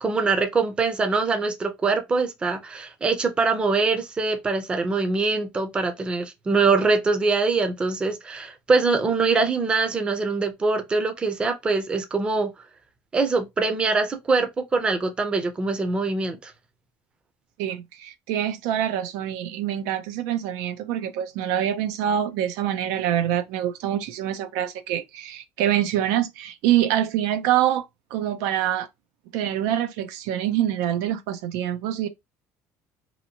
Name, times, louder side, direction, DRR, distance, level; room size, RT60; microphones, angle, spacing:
voice 1, 0.0-12.5 13.1-16.5, right 4 dB, 15° right, 0.5 m, -23 dB
voice 2, 17.6-27.8 28.1-28.9 29.3-32.1, right 11 dB, 85° right, 0.5 m, -25 dB
2.8 x 2.5 x 2.7 m
cardioid pair, 150°, 6 cm